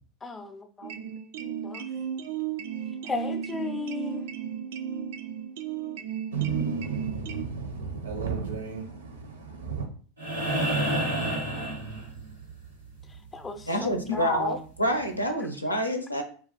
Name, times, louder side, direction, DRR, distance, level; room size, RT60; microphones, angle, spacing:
voice 1, 0.2-1.1 1.4-1.9 3.0-4.2 13.3-14.6, left 4 dB, 15° left, 0.4 m, -35 dB
sound 1, 0.8-7.4, right 8 dB, 55° right, 0.3 m, -34 dB
voice 2, 6.3-9.9, right 6 dB, 70° right, 0.7 m, -33 dB
sound 2, 10.2-12.5 14.3-14.4, right 1 dB, 85° right, 1.2 m, -29 dB
voice 3, 13.7-16.2, equal, 90° left, 0.5 m, -27 dB
2.4 x 2.3 x 3.9 m
figure-of-eight pair, 85°, 0 cm